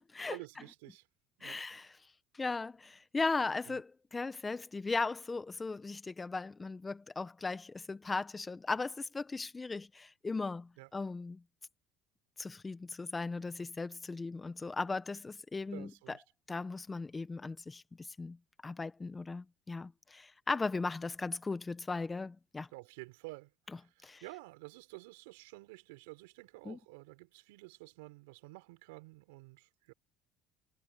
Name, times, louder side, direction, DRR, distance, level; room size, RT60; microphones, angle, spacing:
voice 1, 0.3-1.0 1.4-1.6 3.7-3.8 10.8-10.9 15.7-16.2 22.7-29.9, right 24 dB, 85° right, 5.3 m, -51 dB
voice 2, 1.4-2.0 2.3-11.4 12.4-16.2 16.5-18.4 18.6-22.7 24.0-24.2 26.6-26.8, left 3 dB, 20° left, 1.3 m, -37 dB
supercardioid pair, 80°, 0 cm